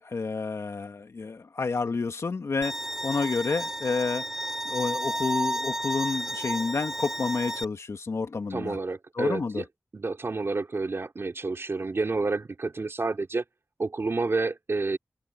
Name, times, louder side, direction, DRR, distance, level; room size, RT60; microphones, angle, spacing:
voice 1, 0.0-2.7 3.0-4.3 4.7-8.8 9.2-9.6, left 4 dB, 70° left, 2.0 m, -29 dB
Bowed string instrument, 2.6-7.6, right 1 dB, 10° right, 7.9 m, -32 dB
voice 2, 8.5-9.6 9.9-13.4 13.8-15.0, right 3 dB, 55° right, 3.2 m, -29 dB
open air
wide cardioid pair, 80°, 5 cm